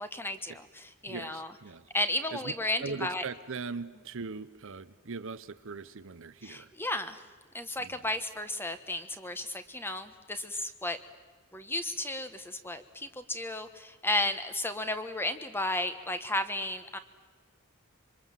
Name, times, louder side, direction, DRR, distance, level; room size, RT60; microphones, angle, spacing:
voice 1, 0.0-1.5 1.9-3.2 6.4-7.2 7.5-11.0 11.5-17.0, left 1 dB, 10° left, 10 dB, 1.3 m, -33 dB
voice 2, 1.1-1.9 2.3-2.5 2.8-6.7 7.8-8.1, right 4 dB, 65° right, 13 dB, 0.8 m, -40 dB
26.5 x 24.0 x 7.5 m, 1.4 s
head